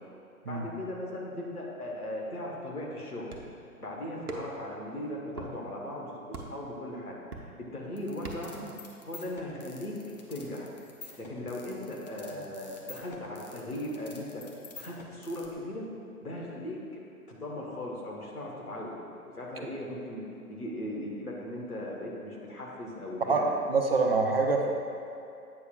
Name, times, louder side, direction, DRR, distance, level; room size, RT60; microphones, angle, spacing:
voice 1, 0.4-3.3 3.8-7.2 7.7-8.7 9.1-9.9 10.3-10.7 11.2-14.4 14.7-15.8 16.2-16.8 17.3-19.0 19.2-20.2 20.5-23.5, left 1 dB, 75° left, -2 dB, 1.5 m, -38 dB
sound 1, 3.3-3.6 4.3-4.7 5.3-5.5 6.3-6.7 7.3-7.7 8.3-8.6, right 2 dB, 80° right, 0.9 m, -41 dB
sound 2, 8.0-15.5, left 4 dB, 30° left, 0.5 m, -48 dB
voice 2, 23.7-24.8, right 4 dB, 40° right, 2 dB, 0.5 m, -25 dB
8.4 x 6.2 x 2.4 m, 2.7 s
figure-of-eight pair, 125°, 45 cm